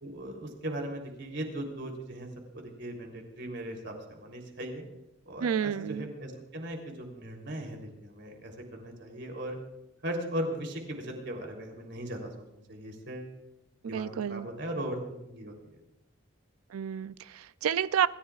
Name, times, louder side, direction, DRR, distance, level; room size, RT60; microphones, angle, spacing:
voice 1, 0.0-2.3 2.5-4.8 5.3-9.6 10.0-12.3 12.7-13.3 13.9-15.5, right 1 dB, 55° right, 2 dB, 3.4 m, -38 dB
voice 2, 5.4-6.1 13.8-14.5 16.7-18.1, right 8 dB, 85° right, 16 dB, 0.4 m, -30 dB
26.5 x 15.0 x 2.4 m, 0.92 s
head